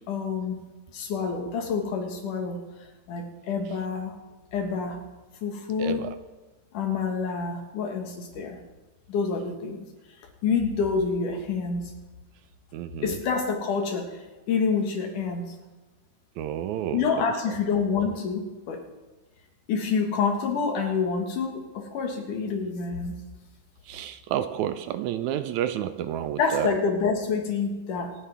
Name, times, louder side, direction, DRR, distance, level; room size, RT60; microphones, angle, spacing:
voice 1, 0.1-0.6 0.9-2.6 3.1-4.2 4.5-5.0 5.4-6.1 6.7-8.6 9.1-9.9 10.4-11.9 13.0-15.5 16.9-18.8 19.7-23.2 26.4-28.2, left 5 dB, 80° left, 3 dB, 3.3 m, -27 dB
voice 2, 5.8-6.1 12.7-13.2 16.4-17.1 23.9-26.7, right 11 dB, 75° right, 11 dB, 1.8 m, -30 dB
27.0 x 9.6 x 3.5 m, 1.2 s
omnidirectional pair, 3.6 m